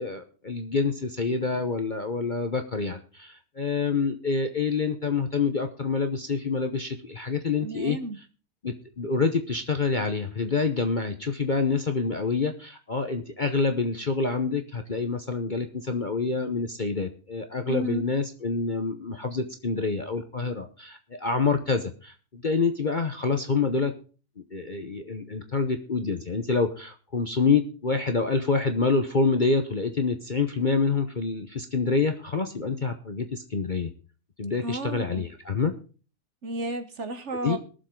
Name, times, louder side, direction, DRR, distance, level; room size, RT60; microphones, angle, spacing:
voice 1, 0.0-8.0 8.6-23.9 24.5-33.9 34.4-35.7 37.4-37.6, left 4 dB, 35° left, 7 dB, 0.9 m, -27 dB
voice 2, 7.6-8.2 17.7-18.0 34.6-35.3 36.4-37.6, right 1 dB, 50° right, 9 dB, 1.3 m, -33 dB
21.5 x 7.3 x 3.8 m, 0.37 s
omnidirectional pair, 1.7 m